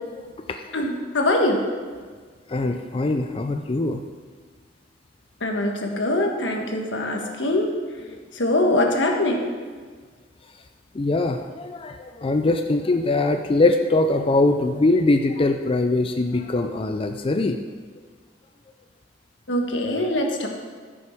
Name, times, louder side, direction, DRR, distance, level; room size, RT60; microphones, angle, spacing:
voice 1, 0.7-1.6 5.4-7.7 8.4-9.4 19.5-20.5, left 1 dB, 80° left, 2 dB, 1.4 m, -23 dB
voice 2, 2.5-4.0 8.1-8.2 10.9-17.6, left 2 dB, 30° left, 6 dB, 0.4 m, -22 dB
14.0 x 6.3 x 4.5 m, 1.5 s
head